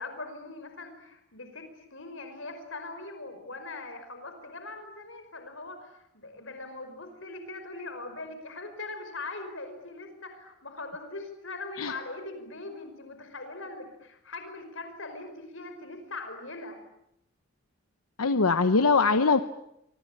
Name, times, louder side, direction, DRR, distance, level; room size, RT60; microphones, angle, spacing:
voice 1, 0.0-16.8, left 3 dB, 65° left, 7 dB, 5.2 m, -41 dB
voice 2, 18.2-19.4, left 4 dB, 90° left, 11 dB, 1.0 m, -22 dB
27.0 x 24.5 x 8.7 m, 0.80 s
head